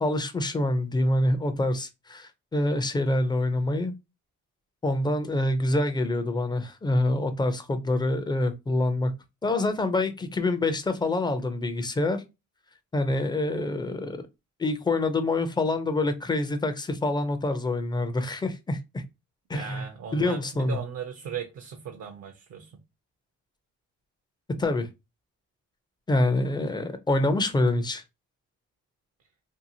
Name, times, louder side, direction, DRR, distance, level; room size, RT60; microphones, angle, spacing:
voice 1, 0.0-3.9 4.8-9.1 9.4-12.2 12.9-14.2 14.6-19.0 19.5-19.8 20.1-20.8 24.6-24.9 26.1-28.0, left 2 dB, 15° left, 0.4 m, -26 dB
voice 2, 19.5-22.8, right 7 dB, 55° right, 0.5 m, -38 dB
2.7 x 2.4 x 2.7 m
cardioid pair, 90°, 30 cm